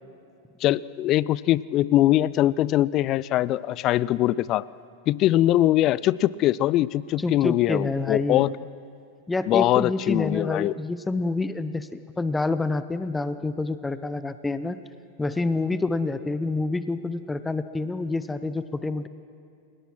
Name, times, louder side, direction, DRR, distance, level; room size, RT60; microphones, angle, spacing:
voice 1, 0.6-4.7 5.1-8.5 9.5-10.7, left 14 dB, 35° left, 21 dB, 0.4 m, -22 dB
voice 2, 7.2-8.5 9.3-14.8 15.2-19.1, left 3 dB, 10° left, 13 dB, 0.8 m, -27 dB
29.5 x 18.0 x 6.1 m, 2.5 s
figure-of-eight pair, 90°, 0 cm